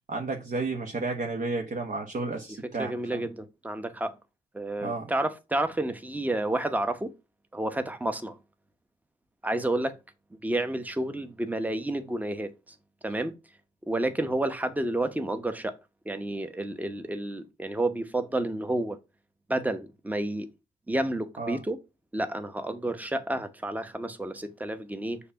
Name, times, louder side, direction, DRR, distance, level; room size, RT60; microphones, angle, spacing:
voice 1, 0.1-3.2 4.8-5.1 21.4-21.6, right 3 dB, 45° right, 1.0 m, -32 dB
voice 2, 2.8-4.1 4.5-7.1 7.5-8.4 9.4-10.0 10.3-12.5 13.0-13.3 13.9-15.8 16.0-19.0 19.5-20.5 20.9-21.8 22.1-25.2, right 1 dB, 10° right, 0.9 m, -30 dB
6.5 x 2.8 x 5.6 m
cardioid pair, 70°, 19 cm